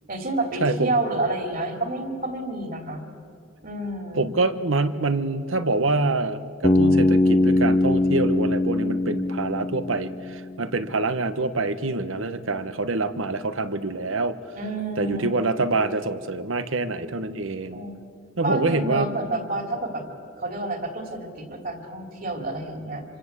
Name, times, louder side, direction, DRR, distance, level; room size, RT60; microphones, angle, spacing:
voice 1, 0.1-3.0 3.6-4.3 14.5-15.3 17.7-18.0 18.4-20.0 20.4-23.0, right 2 dB, 45° right, 5 dB, 3.2 m, -29 dB
voice 2, 0.6-0.9 4.1-14.4 15.0-17.8 18.4-19.1, right 3 dB, 85° right, 12 dB, 1.2 m, -25 dB
Bass guitar, 6.6-10.6, left 2 dB, 25° left, 0.8 m, -21 dB
26.5 x 25.5 x 8.3 m, 2.4 s
head